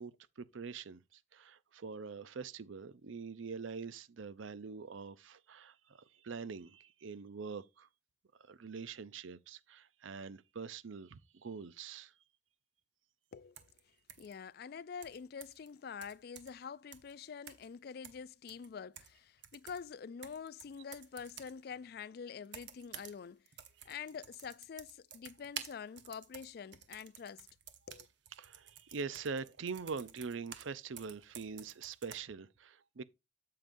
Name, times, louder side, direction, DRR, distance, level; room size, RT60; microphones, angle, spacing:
voice 1, 0.0-7.9 8.4-12.1 28.4-33.0, right 5 dB, 80° right, 0.6 m, -44 dB
voice 2, 13.3-13.6 14.2-23.5 23.9-27.5 27.9-28.1, left 6 dB, 50° left, 0.3 m, -46 dB
sound 1, 13.6-13.8 14.1-14.3 15.0-15.7 16.0-16.6 16.9-17.1 17.5-17.7 18.0-19.2 19.4-21.6 22.4-23.2 23.5-30.7 31.0-32.2, right 9 dB, 60° right, 1.0 m, -51 dB
8.6 x 7.6 x 2.6 m
head